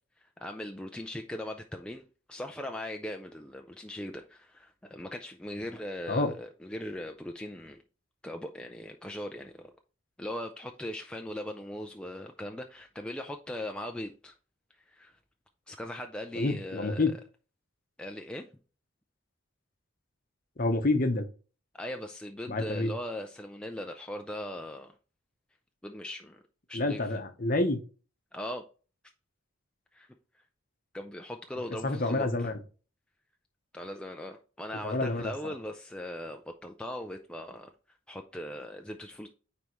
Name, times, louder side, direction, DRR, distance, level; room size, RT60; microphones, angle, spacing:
voice 1, 0.2-7.8 8.2-9.7 10.2-14.3 14.9-15.2 15.7-17.1 18.0-18.5 21.7-24.9 25.8-26.4 26.7-27.2 28.3-28.7 29.9-30.1 30.9-32.5 33.7-39.3, left 1 dB, 5° left, 0.3 m, -39 dB
voice 2, 16.3-17.1 20.6-21.2 22.5-22.9 26.7-27.8 31.8-32.5 34.8-35.2, left 2 dB, 40° left, 0.8 m, -28 dB
9.3 x 3.5 x 3.0 m
head